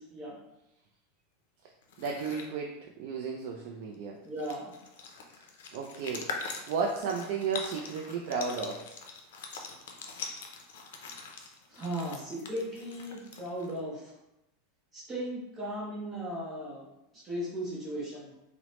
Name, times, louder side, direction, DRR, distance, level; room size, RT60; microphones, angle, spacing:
sound 1, 1.8-2.5 3.9-4.0 4.2-13.8, left 4 dB, 85° left, 0.4 m, -43 dB
voice 1, 2.0-2.7 3.0-4.2 5.3-6.3 6.7-8.9, right 5 dB, 55° right, 0 dB, 0.3 m, -33 dB
voice 2, 4.2-4.6 11.7-14.1 14.9-16.9 17.1-18.3, equal, 20° right, -5 dB, 0.7 m, -37 dB
3.0 x 2.0 x 2.9 m, 0.89 s
supercardioid pair, 160°, 0 cm